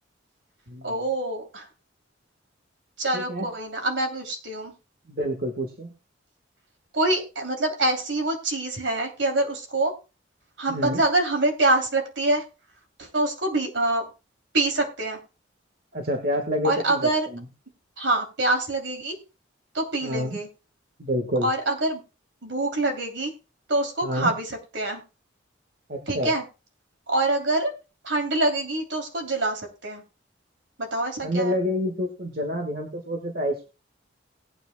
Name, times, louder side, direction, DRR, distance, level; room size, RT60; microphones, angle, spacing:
voice 1, 0.8-1.7 3.0-4.7 6.9-9.9 10.6-12.4 13.0-14.0 14.5-15.2 16.6-17.3 18.0-19.1 19.7-20.5 21.4-22.0 22.4-23.3 23.7-25.0 26.1-26.4 27.1-27.7 28.0-30.0 30.8-31.6, right 2 dB, 75° right, 3 dB, 3.0 m, -25 dB
voice 2, 3.1-3.5 5.1-5.9 10.7-11.0 15.9-17.5 20.0-20.4 21.0-21.5 24.0-24.3 25.9-26.3 31.2-33.7, equal, 50° right, 3 dB, 1.4 m, -28 dB
19.0 x 9.1 x 2.2 m, 0.30 s
head